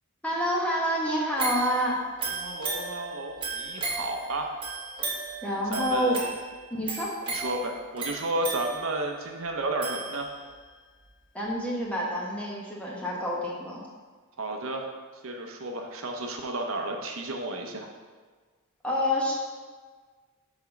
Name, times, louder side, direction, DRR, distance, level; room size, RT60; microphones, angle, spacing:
voice 1, 0.2-2.0 5.4-6.2 6.7-7.1 11.3-13.8 18.8-19.3, equal, 5° left, -4 dB, 1.2 m, -28 dB
sound 1, 1.4-10.6 11.1-11.2, right 4 dB, 25° right, 1.2 m, -36 dB
voice 2, 2.3-4.6 5.7-6.3 7.3-10.3 14.4-14.9 15.2-17.9, right 2 dB, 60° right, 2 dB, 0.7 m, -32 dB
6.0 x 4.3 x 5.8 m, 1.5 s
head